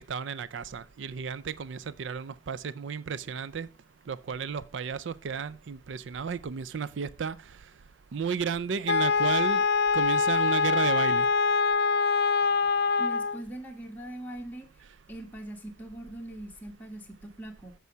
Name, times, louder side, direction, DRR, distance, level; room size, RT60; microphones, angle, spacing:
voice 1, 0.1-3.7 4.1-7.4 8.1-9.6 9.9-11.3, right 6 dB, 70° right, 0.4 m, -33 dB
Wind instrument woodwind instrument, 8.9-13.4, left 5 dB, 60° left, 0.4 m, -24 dB
voice 2, 13.0-14.7 15.1-17.7, right 1 dB, 10° left, 1.5 m, -41 dB
8.3 x 6.2 x 4.5 m
head